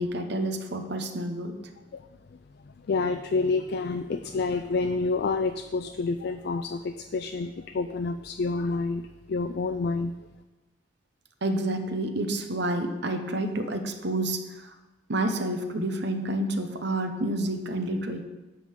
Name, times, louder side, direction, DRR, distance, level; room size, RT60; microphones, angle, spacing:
voice 1, 0.0-1.6 11.4-14.7 15.1-18.2, right 1 dB, 60° right, 6 dB, 0.9 m, -29 dB
voice 2, 2.9-10.1, left 3 dB, 55° left, 7 dB, 0.4 m, -28 dB
11.0 x 3.7 x 7.2 m, 1.1 s
head